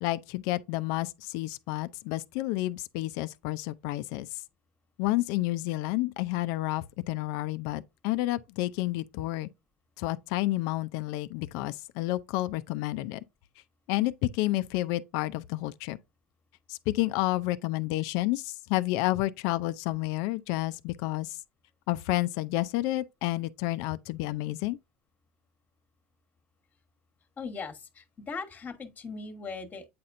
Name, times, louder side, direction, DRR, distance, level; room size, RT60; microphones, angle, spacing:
voice 1, 0.0-4.4 5.0-9.5 10.0-13.2 13.9-16.0 16.7-21.4 21.9-24.8, left 17 dB, 70° left, 0.5 m, -30 dB
voice 2, 27.4-29.9, left 4 dB, 25° left, 1.3 m, -39 dB
8.5 x 4.3 x 2.6 m
supercardioid pair, 110°, 6 cm